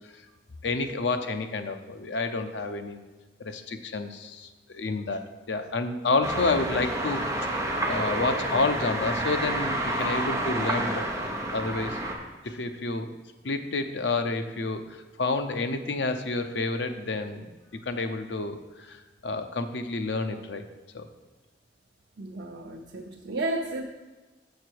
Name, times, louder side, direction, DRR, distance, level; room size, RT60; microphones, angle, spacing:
voice 1, 0.6-3.0 3.4-5.2 5.5-7.2 7.9-11.1 11.5-12.0 12.4-13.1 13.4-17.5 17.9-20.6 20.9-21.1, left 3 dB, 85° left, 8 dB, 0.7 m, -29 dB
sound 1, 6.2-12.1, right 1 dB, 20° right, 1.0 m, -29 dB
voice 2, 22.2-23.8, right 2 dB, 80° right, -1 dB, 0.7 m, -32 dB
6.9 x 6.6 x 4.6 m, 1.2 s
head